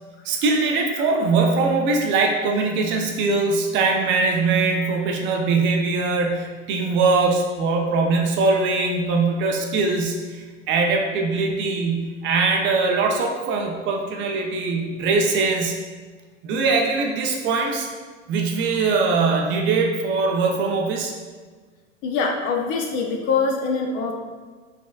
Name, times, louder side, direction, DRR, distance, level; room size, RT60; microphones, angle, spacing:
voice 1, 0.2-15.8 16.4-17.9 18.3-21.1, right 3 dB, 30° right, 2 dB, 0.5 m, -21 dB
voice 2, 22.0-24.1, left 4 dB, 35° left, 2 dB, 0.4 m, -23 dB
5.0 x 3.5 x 2.3 m, 1.4 s
hypercardioid pair, 105°, 38 cm